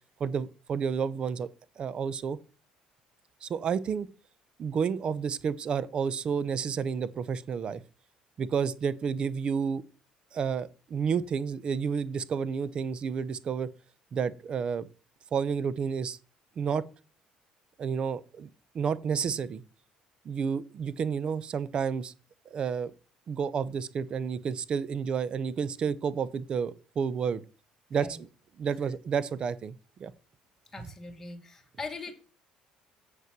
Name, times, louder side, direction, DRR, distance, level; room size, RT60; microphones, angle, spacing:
voice 1, 0.2-1.5 1.8-2.4 3.4-4.1 4.6-7.8 8.4-9.8 10.3-13.7 14.1-14.9 15.3-16.2 16.6-16.9 17.8-18.5 18.7-19.6 20.2-22.1 22.5-22.9 23.3-27.4 27.9-28.3 28.6-29.7 30.0-30.1, right 6 dB, 45° right, 0.7 m, -30 dB
voice 2, 30.7-32.1, left 3 dB, 15° left, 2.2 m, -41 dB
7.8 x 5.6 x 6.0 m
cardioid pair, 105°, 2 cm